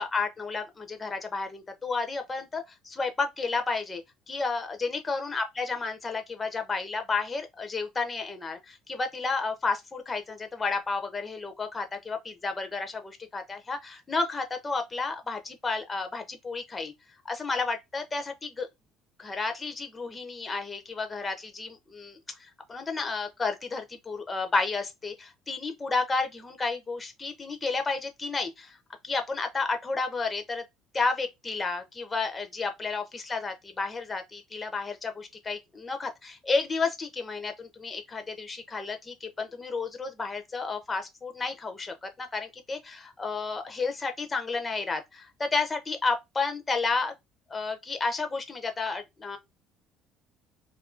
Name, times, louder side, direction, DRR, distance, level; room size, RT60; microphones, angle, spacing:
voice 1, 0.0-16.9 17.2-18.7 19.2-28.8 29.0-30.6 30.9-47.1 47.5-49.4, left 4 dB, 15° left, 0.5 m, -31 dB
2.6 x 2.4 x 3.6 m
cardioid pair, 150°, 0 cm